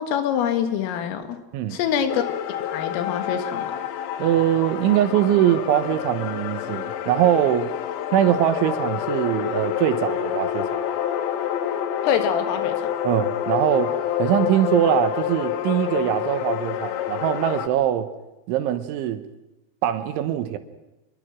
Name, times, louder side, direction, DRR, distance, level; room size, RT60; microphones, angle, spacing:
voice 1, 0.0-1.4 1.7-2.2 2.5-3.8 12.0-12.9, left 8 dB, 90° left, 8 dB, 4.3 m, -25 dB
sound 1, 2.1-17.7, left 10 dB, 70° left, 3.2 m, -28 dB
voice 2, 4.2-7.7 8.1-10.8 13.0-13.9 14.2-18.1 18.5-19.2 19.8-20.6, right 11 dB, 75° right, 10 dB, 3.4 m, -22 dB
26.0 x 22.0 x 6.2 m, 0.99 s
omnidirectional pair, 5.7 m